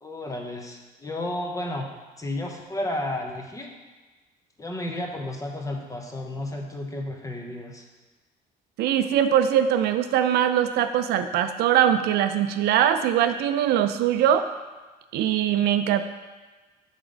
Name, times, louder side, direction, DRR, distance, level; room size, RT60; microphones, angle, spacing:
voice 1, 0.0-1.9 2.2-3.7 4.6-7.8, left 1 dB, 20° left, 1 dB, 0.9 m, -32 dB
voice 2, 8.8-14.5 15.1-16.0, right 10 dB, 75° right, 9 dB, 0.4 m, -22 dB
5.9 x 3.6 x 5.1 m, 1.3 s
cardioid pair, 110°, 17 cm